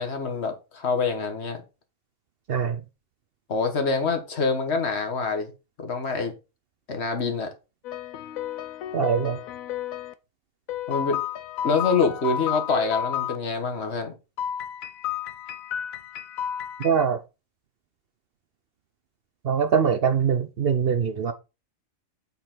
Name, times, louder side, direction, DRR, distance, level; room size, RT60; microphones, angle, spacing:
voice 1, 0.0-1.6 3.5-5.5 5.8-6.3 6.9-7.5 10.9-11.2 11.6-14.1, left 4 dB, 55° left, 1.4 m, -26 dB
voice 2, 2.5-2.8 8.9-9.4 16.8-17.2 19.4-21.3, right 7 dB, 55° right, 0.7 m, -23 dB
sound 1, 7.8-10.1 10.7-13.4 14.4-17.0, left 10 dB, 85° left, 1.1 m, -32 dB
7.8 x 3.9 x 4.4 m
omnidirectional pair, 1.4 m